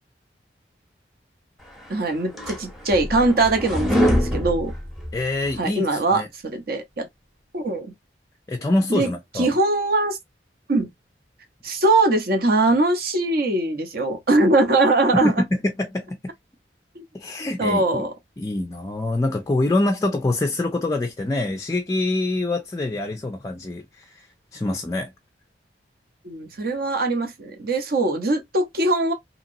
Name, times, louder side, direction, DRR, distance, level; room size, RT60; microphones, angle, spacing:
sound 1, 1.9-5.6, equal, ahead, 0.7 m, -24 dB
voice 1, 1.9-4.7 5.6-6.2 6.5-7.1 7.5-7.9 8.9-9.1 9.4-10.2 10.7-10.9 11.6-15.4 16.9-17.0 17.6-18.1 26.2-29.1, right 2 dB, 55° right, 0.7 m, -21 dB
voice 2, 5.1-6.3 8.5-9.5 15.1-16.3 17.1-18.0 18.4-24.3 24.5-25.1, left 2 dB, 20° left, 0.3 m, -25 dB
2.9 x 2.8 x 2.5 m
head